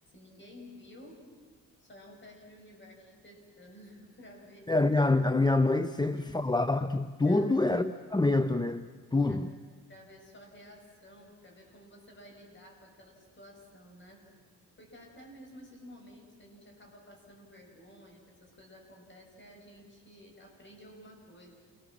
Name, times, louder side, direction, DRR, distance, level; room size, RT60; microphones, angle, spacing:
voice 1, 0.1-1.2 1.8-4.7 5.8-6.5 7.3-7.5 9.2-9.6 9.9-14.2 14.8-21.6, left 1 dB, 30° left, 7.3 m, -53 dB
voice 2, 4.7-9.5, left 2 dB, 10° left, 0.7 m, -26 dB
28.5 x 20.5 x 7.5 m
cardioid pair, 95°, 35 cm